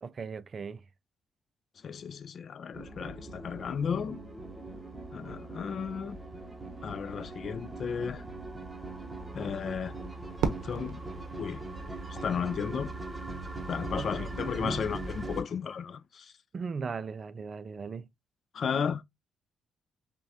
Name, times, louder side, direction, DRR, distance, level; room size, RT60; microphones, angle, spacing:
voice 1, 0.0-0.8 14.0-14.9 16.5-18.1, right 5 dB, 40° right, 0.3 m, -38 dB
voice 2, 1.8-4.2 5.1-6.2 6.8-8.2 9.3-9.9 10.6-11.0 11.4-11.6 12.1-12.9 13.7-16.3 18.5-19.0, left 7 dB, 55° left, 0.3 m, -34 dB
tense synth build up, 2.7-15.4, right 2 dB, 15° right, 0.9 m, -41 dB
Fireworks, 10.4-12.6, right 6 dB, 85° right, 0.6 m, -35 dB
5.6 x 2.2 x 2.7 m
cardioid pair, 90°, 0 cm